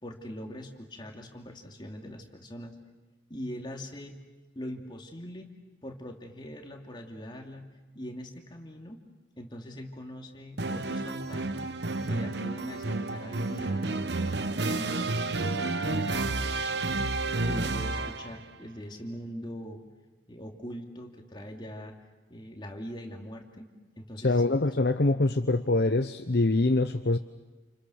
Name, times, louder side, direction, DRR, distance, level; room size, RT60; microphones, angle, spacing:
voice 1, 0.0-2.8 3.3-4.1 4.5-5.5 5.8-7.7 7.9-9.0 9.4-11.7 12.0-14.0 14.7-17.0 17.4-19.8 20.3-22.0 22.3-23.7 23.9-24.4, equal, 25° left, 2 dB, 2.9 m, -42 dB
sound 1, 10.6-18.4, right 3 dB, 70° right, 1.0 m, -30 dB
voice 2, 24.2-27.2, left 2 dB, 60° left, 8 dB, 0.9 m, -24 dB
29.5 x 29.0 x 6.5 m, 1.2 s
head